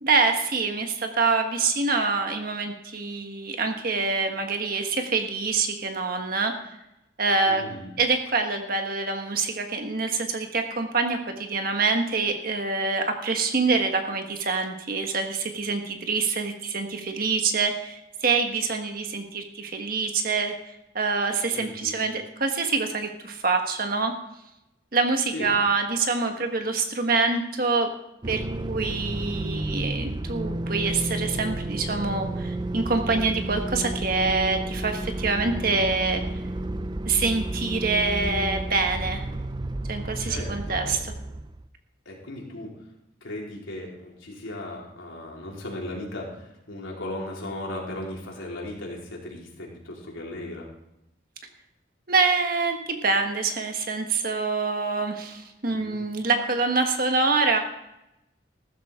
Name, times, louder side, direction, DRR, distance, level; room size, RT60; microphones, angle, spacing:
voice 1, 0.0-6.5 7.2-7.6 8.0-20.5 20.9-24.1 24.9-27.9 28.3-28.4 28.7-36.2 37.0-39.2 39.9-41.0 52.1-57.6, right 4 dB, 45° right, 4 dB, 1.5 m, -25 dB
voice 2, 7.5-7.9 21.5-22.0 25.3-25.6 40.2-41.0 42.1-42.7 43.2-50.7 55.7-56.0, left 1 dB, 85° left, -2 dB, 4.1 m, -37 dB
sound 1, 28.2-41.7, right 1 dB, 20° right, 0.4 m, -31 dB
15.5 x 13.0 x 3.7 m, 0.87 s
head